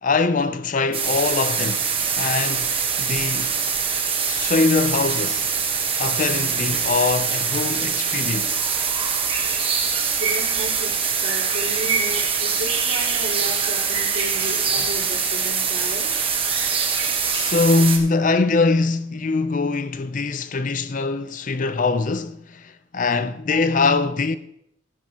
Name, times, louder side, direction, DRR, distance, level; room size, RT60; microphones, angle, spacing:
voice 1, 0.0-1.8 2.2-2.7 3.0-3.5 4.3-5.5 6.0-8.6 17.3-24.4, left 3 dB, 40° left, 0.4 m, -22 dB
sound 1, 0.9-18.0, right 6 dB, 25° right, 1.1 m, -23 dB
voice 2, 10.2-10.9 11.2-16.1 23.5-23.7, right 1 dB, 65° right, 4.0 m, -33 dB
13.0 x 11.0 x 2.9 m
head